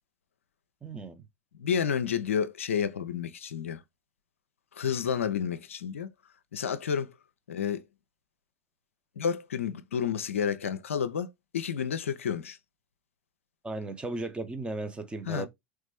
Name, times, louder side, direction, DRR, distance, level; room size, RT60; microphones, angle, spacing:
voice 1, 0.8-1.2 13.6-15.5, right 2 dB, 15° right, 0.9 m, -36 dB
voice 2, 1.6-3.8 4.7-6.1 6.5-7.1 7.5-7.8 9.2-12.6 15.3-15.5, left 7 dB, 75° left, 0.5 m, -30 dB
4.1 x 3.3 x 3.4 m
figure-of-eight pair, 75°, 7 cm